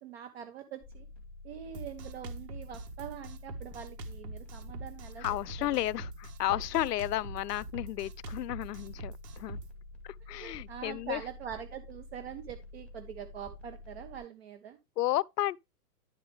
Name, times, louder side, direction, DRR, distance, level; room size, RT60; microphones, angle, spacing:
voice 1, 0.0-1.1 1.4-5.2 5.6-5.7 10.4-14.8, right 9 dB, 40° right, 1.2 m, -44 dB
sound 1, 0.8-14.2, left 2 dB, ahead, 2.1 m, -49 dB
Drum kit, 1.7-9.7, right 2 dB, 90° right, 1.7 m, -44 dB
voice 2, 5.2-9.6 10.0-11.2 15.0-15.6, left 15 dB, 90° left, 0.6 m, -32 dB
11.0 x 4.8 x 3.4 m
hypercardioid pair, 170°, 47 cm